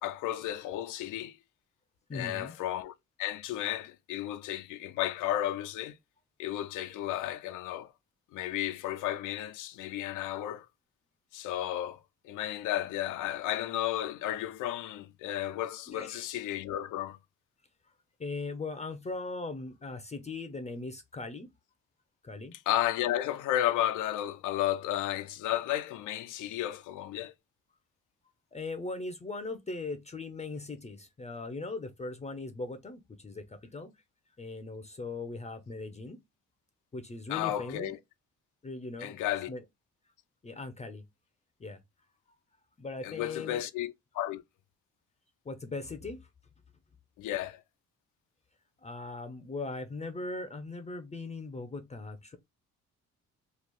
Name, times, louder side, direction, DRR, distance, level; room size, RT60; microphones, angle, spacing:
voice 1, 0.0-1.4 2.1-6.0 6.4-7.9 8.3-10.7 11.3-17.2 22.5-27.3 37.3-38.0 39.0-39.5 43.0-44.4 47.2-47.6, left 13 dB, 90° left, 0.5 m, -33 dB
voice 2, 2.1-2.6 15.9-16.3 18.2-21.5 22.2-22.5 28.5-33.9 34.4-36.2 36.9-37.9 38.6-39.2 39.5-39.6 40.4-41.0 41.6-41.8 42.8-43.6 45.4-46.3 48.8-52.4, left 3 dB, 25° left, 0.5 m, -39 dB
3.0 x 2.4 x 3.4 m
cardioid pair, 90°, 30 cm